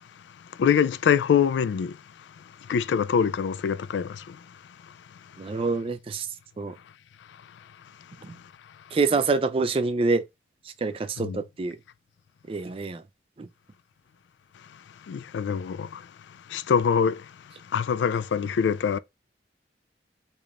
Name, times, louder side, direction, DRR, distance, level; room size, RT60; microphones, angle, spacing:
voice 1, 0.6-2.0 2.7-4.4 11.2-11.4 15.1-16.0 16.5-17.2 17.7-19.0, left 7 dB, 85° left, 0.3 m, -24 dB
voice 2, 5.4-6.3 6.6-6.7 8.2-8.4 8.9-10.2 10.6-11.8 12.5-13.0 13.4-13.5, right 3 dB, 30° right, 0.4 m, -26 dB
3.4 x 2.4 x 4.0 m
head